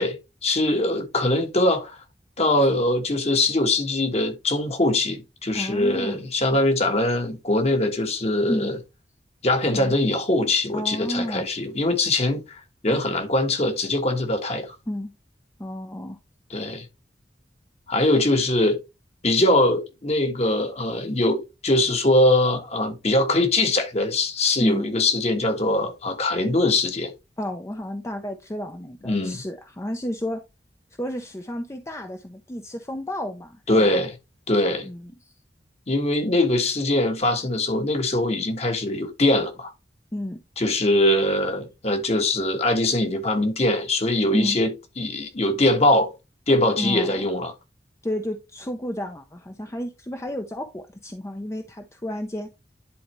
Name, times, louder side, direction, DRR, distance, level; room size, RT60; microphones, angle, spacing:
voice 1, 0.0-2.0 2.4-8.8 9.4-14.7 16.5-16.8 17.9-18.8 19.2-27.1 29.0-29.4 33.7-34.1 34.5-34.9 35.9-39.7 40.6-46.1 46.5-47.5, left 1 dB, 40° left, 1.4 m, -22 dB
voice 2, 5.5-6.2 8.5-8.7 9.7-10.0 10.7-11.5 14.9-15.1 15.6-16.2 24.6-24.9 27.4-30.4 31.0-34.0 34.8-35.4 40.1-40.4 44.3-44.6 46.8-47.3 48.0-52.5, left 1 dB, 15° left, 0.6 m, -31 dB
10.5 x 4.2 x 3.1 m
head